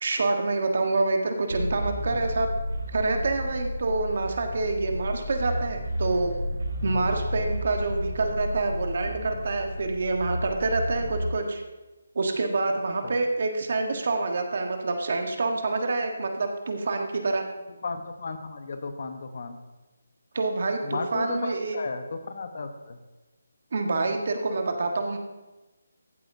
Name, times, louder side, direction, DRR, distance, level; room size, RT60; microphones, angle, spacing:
voice 1, 0.0-2.5 2.9-6.3 6.8-11.6 12.1-17.4 20.3-21.8 23.7-25.2, right 3 dB, 50° right, 4 dB, 1.3 m, -27 dB
sound 1, 1.5-11.3, equal, 75° right, 2.7 m, -32 dB
voice 2, 17.8-19.6 20.8-23.0, left 4 dB, 50° left, 7 dB, 1.0 m, -35 dB
15.0 x 8.0 x 2.7 m, 1.1 s
hypercardioid pair, 170°, 0 cm